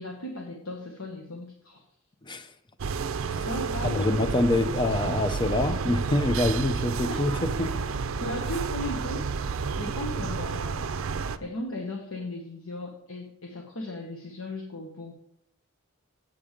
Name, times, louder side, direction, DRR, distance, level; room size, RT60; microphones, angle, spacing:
voice 1, 0.0-1.8 3.4-4.3 6.4-6.6 7.1-7.2 7.6-7.8 8.2-15.1, left 1 dB, 80° left, 1 dB, 1.2 m, -37 dB
sound 1, 2.8-11.4, right 5 dB, 70° right, 0.5 m, -30 dB
voice 2, 3.8-7.7, left 2 dB, 20° left, 9 dB, 0.6 m, -26 dB
7.8 x 7.4 x 5.0 m, 0.74 s
head